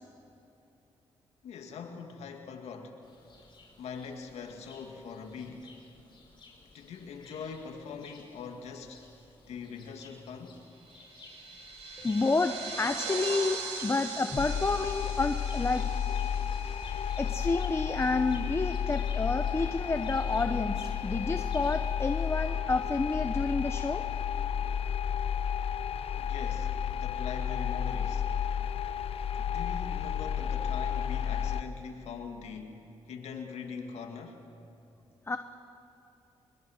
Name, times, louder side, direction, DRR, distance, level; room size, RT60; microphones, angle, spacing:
voice 1, 1.4-3.0 3.8-5.7 6.7-9.0 9.5-10.6 26.1-28.3 29.4-34.4, left 5 dB, 80° left, 3 dB, 2.2 m, -42 dB
sound 1, 3.0-22.3, left 3 dB, 45° left, 5.5 m, -55 dB
sound 2, 10.8-17.7, right 4 dB, 90° right, 2.9 m, -40 dB
voice 2, 12.0-15.8 17.2-24.0 35.3-35.4, left 3 dB, 25° left, 9 dB, 1.0 m, -30 dB
sound 3, 14.4-31.6, left 8 dB, 65° left, 0.8 m, -32 dB
22.5 x 22.0 x 6.6 m, 2.9 s
cardioid pair, 75°, 11 cm